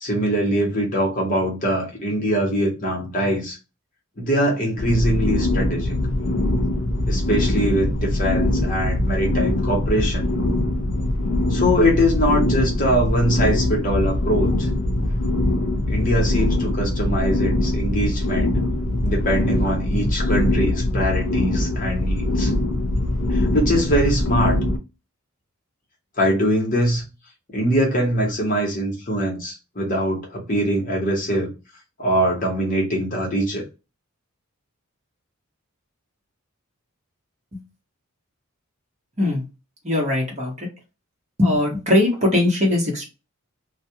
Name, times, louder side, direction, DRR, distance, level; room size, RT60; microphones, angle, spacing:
voice 1, 0.0-3.6 4.2-5.9 7.1-10.3 11.5-14.7 15.9-18.6 19.0-22.5 23.3-24.6 26.2-27.0 27.5-31.5 32.0-33.6, equal, 35° left, 0.9 m, -22 dB
sound 1, 4.8-24.8, left 1 dB, 60° left, 0.5 m, -22 dB
voice 2, 39.8-40.5 41.4-43.0, left 1 dB, 30° right, 0.9 m, -20 dB
2.2 x 2.2 x 2.7 m
head